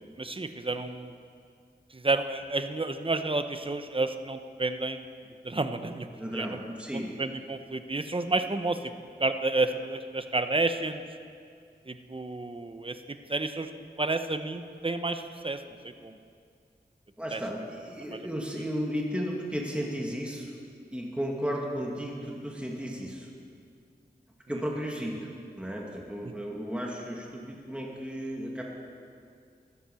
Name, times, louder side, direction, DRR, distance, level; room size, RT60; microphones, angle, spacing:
voice 1, 0.2-1.2 1.9-5.0 5.4-6.6 6.9-8.9 9.2-11.0 11.9-13.0 13.3-13.7 14.0-16.2 17.3-17.4 18.1-18.3 26.2-26.3, right 2 dB, 30° right, 8 dB, 0.9 m, -31 dB
voice 2, 6.1-7.1 17.2-20.5 20.9-23.3 24.5-25.2 25.6-28.6, equal, 5° right, -2 dB, 2.1 m, -34 dB
15.5 x 12.0 x 7.0 m, 2.3 s
wide cardioid pair, 70°, 17 cm